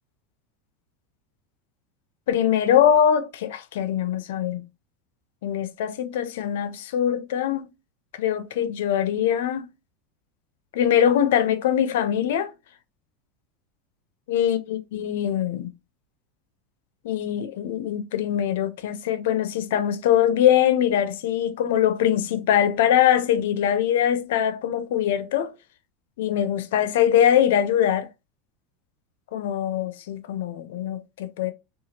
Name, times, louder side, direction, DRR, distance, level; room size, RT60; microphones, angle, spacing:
voice 1, 2.3-4.6 5.4-7.7 8.2-9.7 10.7-12.5 14.3-15.7 17.0-25.5 26.2-28.1 29.3-31.5, left 10 dB, 85° left, 0.4 m, -22 dB
2.8 x 2.3 x 2.8 m
supercardioid pair, 155°, 0 cm